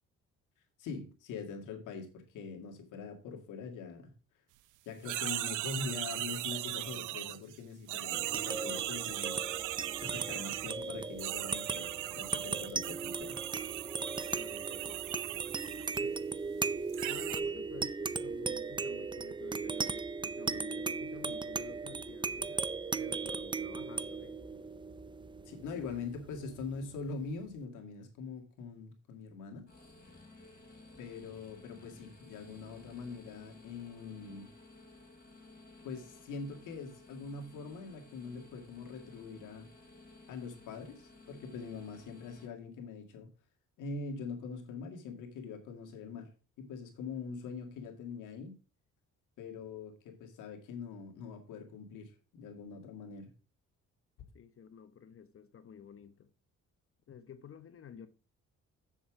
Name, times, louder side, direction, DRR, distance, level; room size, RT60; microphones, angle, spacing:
voice 1, 0.8-4.1 4.8-9.7 10.0-13.4 25.5-29.7 31.0-34.5 35.8-39.7 40.3-43.3 43.8-46.3 46.6-48.5 49.4-53.3, left 4 dB, 90° left, 2.2 m, -43 dB
sound 1, 5.0-7.6 7.9-10.8 11.2-16.0 16.9-17.4, right 16 dB, 90° right, 0.6 m, -38 dB
sound 2, 8.1-27.0, right 4 dB, 15° right, 0.4 m, -37 dB
voice 2, 14.3-16.1 17.1-24.4 25.7-26.0 54.3-56.3 57.1-58.1, left 8 dB, 45° left, 0.9 m, -52 dB
sound 3, 29.7-42.5, left 2 dB, 30° left, 4.7 m, -56 dB
7.4 x 7.1 x 4.8 m
cardioid pair, 90°, 30 cm